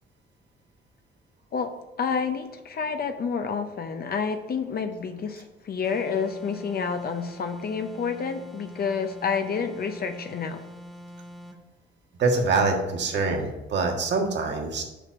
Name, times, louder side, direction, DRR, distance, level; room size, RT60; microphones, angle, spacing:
voice 1, 2.0-10.6, left 6 dB, 50° left, 7 dB, 0.7 m, -29 dB
sound 1, 5.8-11.6, equal, ahead, 1.2 m, -44 dB
voice 2, 12.2-14.8, right 3 dB, 60° right, 2 dB, 1.6 m, -24 dB
6.8 x 4.3 x 6.2 m, 1.0 s
cardioid pair, 90°, 20 cm